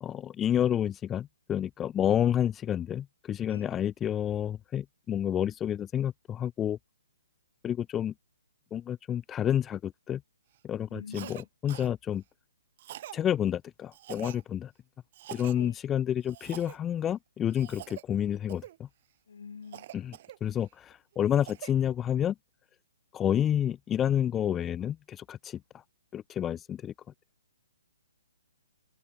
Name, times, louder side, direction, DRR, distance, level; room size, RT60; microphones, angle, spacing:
voice 1, 0.0-6.8 7.6-8.1 8.7-10.2 10.6-12.2 13.1-14.7 15.3-18.9 19.9-22.3 23.1-25.6 26.1-26.9, left 10 dB, 15° left, 1.5 m, -29 dB
voice 2, 10.9-11.4 15.5-15.8 19.3-20.1, left 5 dB, 65° left, 4.0 m, -45 dB
Cough, 11.1-11.4 11.7-11.9 12.8-13.2 13.9-14.4 15.1-15.6 16.3-16.8 17.5-18.0 18.5-18.8 19.7-20.7 21.1-21.7, right 13 dB, 45° right, 2.0 m, -45 dB
open air
figure-of-eight pair, 130°, 0 cm